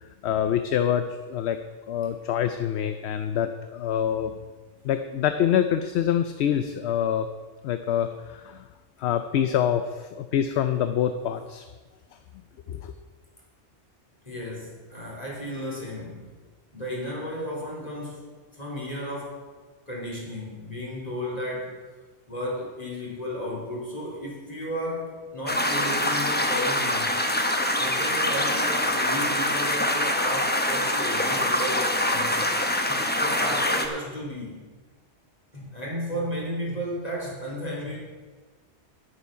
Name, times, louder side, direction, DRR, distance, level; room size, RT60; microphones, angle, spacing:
voice 1, 0.0-1.6 1.9-4.3 4.8-7.3 7.6-8.6 9.0-11.6 12.7-12.9, left 9 dB, 70° left, 9 dB, 0.8 m, -26 dB
voice 2, 14.3-16.2 16.7-19.4 19.9-21.8 22.3-27.3 27.8-32.5 32.9-34.6 35.5-38.0, equal, 35° left, -4 dB, 3.4 m, -34 dB
sound 1, 25.5-33.9, left 1 dB, 10° left, 0.7 m, -25 dB
9.9 x 8.7 x 5.7 m, 1.3 s
omnidirectional pair, 1.2 m